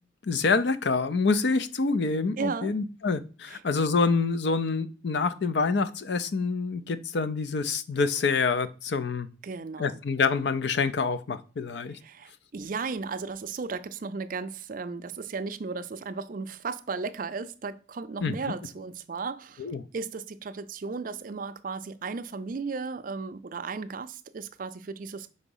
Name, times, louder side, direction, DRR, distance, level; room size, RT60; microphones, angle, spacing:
voice 1, 0.2-9.3 9.8-12.0 18.2-18.4 19.6-19.8, left 4 dB, 60° left, 0.5 m, -26 dB
voice 2, 2.4-2.7 3.5-3.6 9.4-10.0 12.0-19.7 19.9-25.3, right 4 dB, 45° right, 0.4 m, -35 dB
4.8 x 4.0 x 5.4 m
head